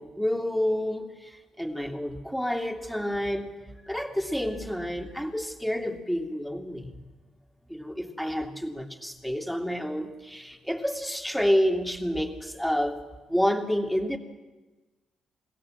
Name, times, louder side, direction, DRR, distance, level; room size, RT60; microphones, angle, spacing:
voice 1, 0.0-3.5 3.8-6.9 7.7-13.0 13.3-14.2, equal, ahead, 2 dB, 2.5 m, -29 dB
22.0 x 16.5 x 7.6 m, 1.2 s
cardioid pair, 90°, 0 cm